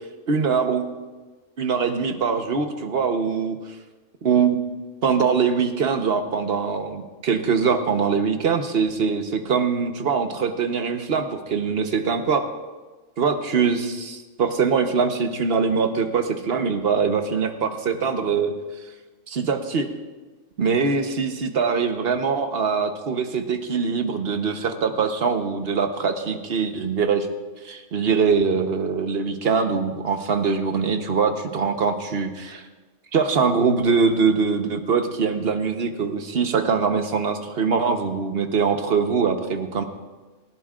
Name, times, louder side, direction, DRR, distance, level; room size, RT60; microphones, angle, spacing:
voice 1, 0.3-1.0 1.6-3.6 4.2-4.7 5.0-12.5 13.2-18.5 19.3-19.9 20.6-27.3 27.6-32.6 33.1-39.8, right 5 dB, 55° right, 6 dB, 1.1 m, -23 dB
18.5 x 17.0 x 2.4 m, 1.3 s
omnidirectional pair, 1.3 m